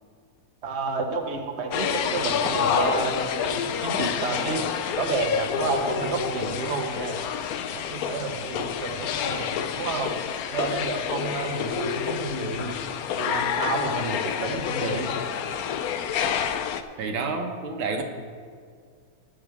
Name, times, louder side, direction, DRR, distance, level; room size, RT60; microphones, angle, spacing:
voice 1, 0.6-4.6 5.0-7.2 7.7-10.1 10.5-12.7 13.2-15.1, right 4 dB, 40° right, 2 dB, 1.3 m, -30 dB
sound 1, 1.7-16.8, left 8 dB, 70° left, 0.8 m, -28 dB
voice 2, 17.0-18.0, right 4 dB, 90° right, 3 dB, 1.9 m, -29 dB
19.5 x 7.7 x 3.6 m, 2.1 s
omnidirectional pair, 2.1 m